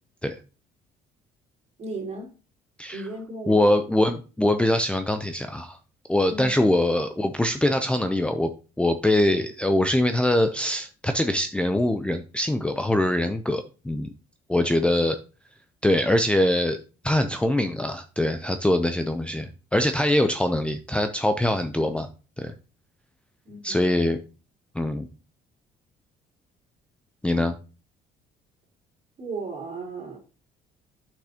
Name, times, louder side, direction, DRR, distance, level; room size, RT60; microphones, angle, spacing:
voice 1, 1.8-2.3 2.9-3.8 6.3-6.5 23.4-23.8 29.2-30.2, right 3 dB, 40° right, 3.5 m, -35 dB
voice 2, 3.5-5.8 6.1-8.5 8.8-14.1 14.5-15.2 15.8-22.1 22.4-22.5 23.6-24.2 24.7-25.1 27.2-27.6, left 1 dB, 5° left, 0.5 m, -23 dB
8.3 x 6.1 x 2.8 m
cardioid pair, 110°, 17 cm